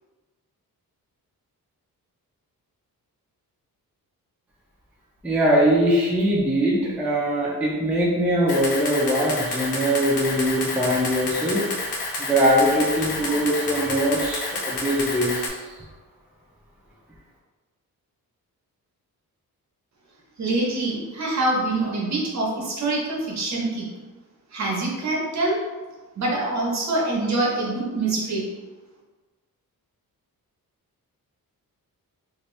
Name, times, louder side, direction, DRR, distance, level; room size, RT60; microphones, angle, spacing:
voice 1, 5.2-11.7 12.2-15.7, equal, 5° right, -5 dB, 0.4 m, -22 dB
Camera, 8.5-15.5, left 2 dB, 85° left, 0.7 m, -29 dB
voice 2, 20.4-23.9 24.5-25.6 26.2-28.4, right 2 dB, 50° right, -3 dB, 0.9 m, -25 dB
2.9 x 2.6 x 3.1 m, 1.3 s
wide cardioid pair, 155°, 36 cm